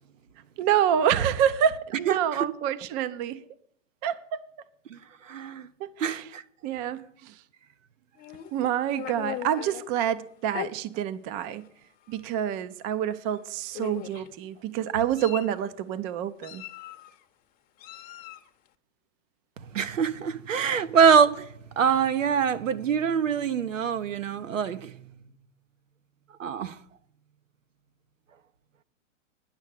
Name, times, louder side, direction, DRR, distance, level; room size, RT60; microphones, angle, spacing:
voice 1, 0.6-3.4 4.0-4.4 5.8-6.3 6.6-7.4 8.5-11.6 12.1-16.6, right 9 dB, 25° right, 0.5 m, -27 dB
voice 2, 5.2-5.7 6.0-6.4 19.7-25.0 26.4-26.8, right 7 dB, 75° right, 1.1 m, -24 dB
Meow, 8.2-9.8 10.5-10.7 11.5-11.7 12.0-12.2 13.3-13.4 13.7-14.3 14.9-15.6 16.4-17.2 17.8-18.5, left 12 dB, 25° left, 0.8 m, -39 dB
10.5 x 6.3 x 8.3 m
hypercardioid pair, 120°, 38 cm